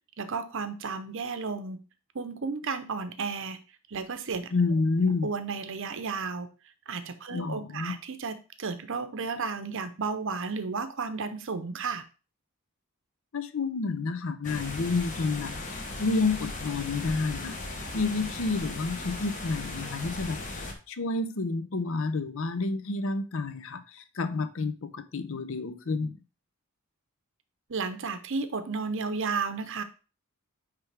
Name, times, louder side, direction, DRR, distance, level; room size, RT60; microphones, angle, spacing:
voice 1, 0.2-1.8 2.1-3.6 3.9-4.5 5.0-6.5 6.9-12.0 27.7-29.8, right 4 dB, 60° right, 0.7 m, -33 dB
voice 2, 4.5-5.3 7.3-8.0 13.3-15.6 16.0-17.6 17.9-26.2, left 3 dB, 60° left, 0.6 m, -29 dB
sound 1, 14.4-20.7, left 2 dB, 35° left, 1.0 m, -37 dB
9.2 x 3.4 x 3.4 m
head